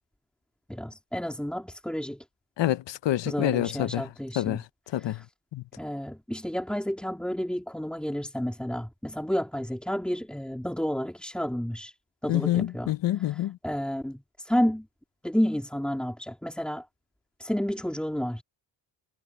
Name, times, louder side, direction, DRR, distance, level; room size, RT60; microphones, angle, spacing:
voice 1, 0.7-2.2 3.3-4.6 5.0-5.2 5.8-11.9 12.2-12.9 13.3-14.9 15.2-16.9 17.4-18.4, equal, ahead, 1.9 m, -30 dB
voice 2, 2.6-4.0 4.4-4.6 4.9-5.2 5.5-5.6 12.3-13.6, left 13 dB, 70° left, 0.7 m, -27 dB
wide cardioid pair, 150°, 44 cm